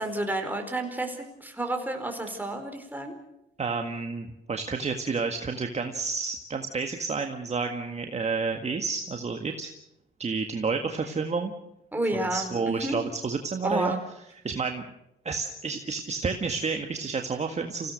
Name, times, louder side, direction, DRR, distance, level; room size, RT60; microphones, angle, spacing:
voice 1, 0.0-3.2 11.9-13.0 13.6-14.0, right 1 dB, 10° right, 4 dB, 4.6 m, -30 dB
voice 2, 3.6-9.7 10.2-11.5 12.1-14.0 14.4-14.8 15.3-17.9, right 4 dB, 35° right, 5 dB, 1.8 m, -30 dB
28.0 x 17.0 x 6.6 m, 0.81 s
cardioid pair, 90°, 20 cm